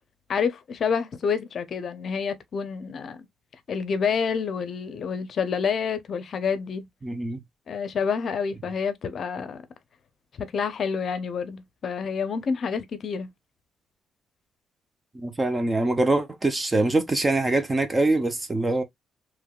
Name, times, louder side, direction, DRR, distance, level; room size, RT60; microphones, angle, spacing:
voice 1, 0.3-3.2 3.7-6.9 7.7-9.6 10.4-13.3, left 6 dB, 55° left, 0.6 m, -28 dB
voice 2, 7.0-7.4 15.1-18.8, right 2 dB, 20° right, 0.8 m, -24 dB
3.3 x 3.0 x 2.3 m
cardioid pair, 90°, 0 cm